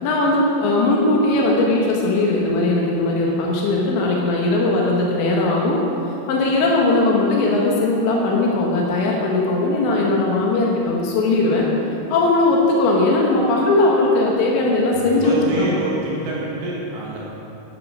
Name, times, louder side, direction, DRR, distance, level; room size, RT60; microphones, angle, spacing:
voice 1, 0.0-5.8 6.3-11.7 12.1-15.7, left 2 dB, 80° left, -2 dB, 3.6 m, -19 dB
voice 2, 14.9-17.2, right 2 dB, 80° right, -5 dB, 4.0 m, -26 dB
12.5 x 10.5 x 5.2 m, 2.8 s
omnidirectional pair, 5.1 m